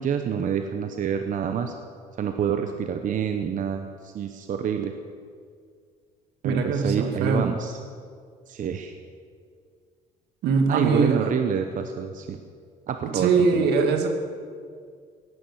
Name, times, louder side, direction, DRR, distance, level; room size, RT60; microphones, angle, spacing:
voice 1, 0.0-1.7 2.2-4.9 6.4-7.8 8.5-8.9 10.7-12.4 12.9-13.7, right 7 dB, 50° right, 6 dB, 1.0 m, -27 dB
voice 2, 6.4-7.5 10.4-11.2 13.0-14.1, right 5 dB, 80° right, 5 dB, 2.2 m, -22 dB
17.0 x 11.0 x 7.3 m, 2.1 s
cardioid pair, 110°, 17 cm